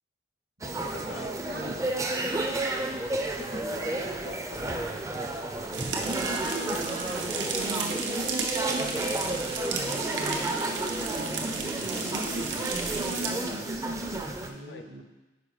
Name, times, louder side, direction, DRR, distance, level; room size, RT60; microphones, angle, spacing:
sound 1, 0.6-14.5, right 2 dB, 15° right, 0.4 m, -32 dB
voice 1, 0.8-1.4 3.2-5.5 12.1-12.7 14.7-14.9, left 3 dB, 65° left, 7 dB, 0.5 m, -45 dB
voice 2, 1.5-1.9 6.0-10.5 11.1-11.8 12.1-15.0, right 1 dB, 55° right, 3 dB, 0.8 m, -39 dB
sound 2, 5.7-13.3, right 4 dB, 90° right, 0.8 m, -33 dB
5.2 x 4.8 x 4.7 m, 1.1 s
head